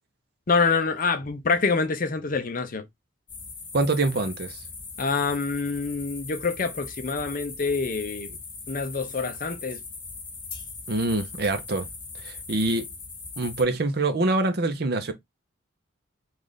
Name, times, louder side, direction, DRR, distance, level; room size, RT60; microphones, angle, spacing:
voice 1, 0.5-2.9 5.0-8.4 8.7-9.8, left 4 dB, 40° left, 0.5 m, -26 dB
sound 1, 3.3-13.6, left 4 dB, 25° left, 1.0 m, -40 dB
voice 2, 3.7-4.6 10.9-11.9 12.2-12.9 13.4-15.1, right 2 dB, 50° right, 0.6 m, -25 dB
3.2 x 2.4 x 3.8 m
head